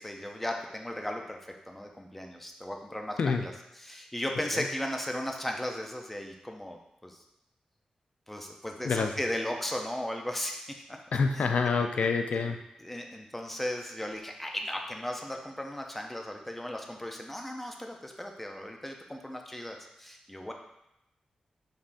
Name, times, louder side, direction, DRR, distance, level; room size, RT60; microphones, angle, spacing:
voice 1, 0.0-1.4 1.7-3.5 3.8-7.2 8.3-11.0 11.8-12.1 12.3-12.4 12.8-20.5, left 1 dB, 5° left, 2 dB, 0.5 m, -36 dB
voice 2, 11.1-12.6, left 5 dB, 70° left, 6 dB, 0.3 m, -27 dB
5.1 x 3.4 x 2.5 m, 0.85 s
wide cardioid pair, 130°, 2 cm